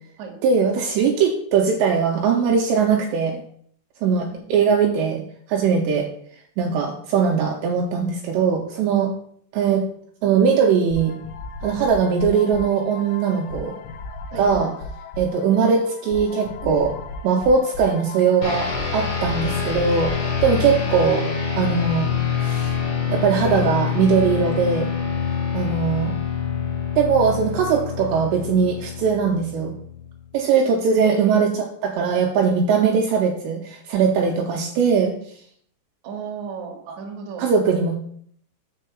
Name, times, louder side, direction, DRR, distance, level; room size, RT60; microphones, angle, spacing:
voice 1, 0.4-3.4 4.0-5.2 5.5-6.1 6.6-9.1 9.5-9.8 10.2-11.2 11.6-13.7 14.4-14.7 15.2-16.9 17.2-20.1 20.4-21.2 21.6-22.1 22.4-22.7 23.1-24.9 25.5-26.1 27.0-29.7 30.3-31.5 31.8-35.1 36.9-37.0 37.4-38.0, right 6 dB, 80° right, 2 dB, 2.7 m, -20 dB
sound 1, 10.9-21.3, left 3 dB, 85° left, 3.2 m, -36 dB
sound 2, 18.4-30.1, left 6 dB, 30° left, 2.9 m, -26 dB
voice 2, 31.0-31.6 32.8-32.9 36.0-37.4, right 6 dB, 60° right, 1 dB, 2.0 m, -34 dB
6.5 x 4.6 x 6.8 m, 0.63 s
omnidirectional pair, 5.5 m